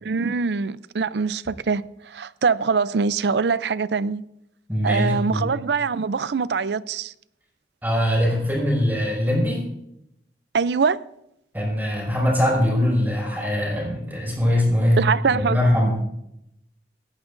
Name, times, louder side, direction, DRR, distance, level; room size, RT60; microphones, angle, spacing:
voice 1, 0.0-4.2 4.8-7.1 10.5-11.0 15.0-15.6, right 5 dB, 75° right, 0.5 m, -23 dB
voice 2, 4.7-5.5 7.8-9.6 11.5-15.9, left 1 dB, 10° right, 5.4 m, -22 dB
19.5 x 16.0 x 2.6 m
head